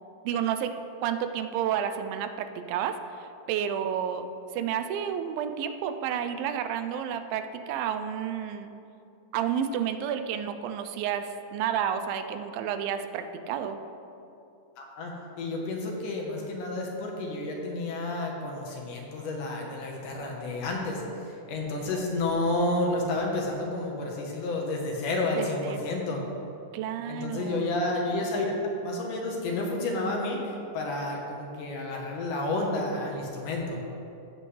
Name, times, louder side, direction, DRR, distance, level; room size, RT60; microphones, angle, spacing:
voice 1, 0.2-3.0 3.5-4.3 4.5-8.7 9.3-13.8 25.4-25.9 26.7-27.8, right 8 dB, 85° right, 8 dB, 2.4 m, -31 dB
voice 2, 14.8-15.1 15.4-26.2 27.1-28.5 28.8-33.8, left 2 dB, 70° left, 0 dB, 2.5 m, -30 dB
15.5 x 7.6 x 3.3 m, 2.7 s
omnidirectional pair, 4.1 m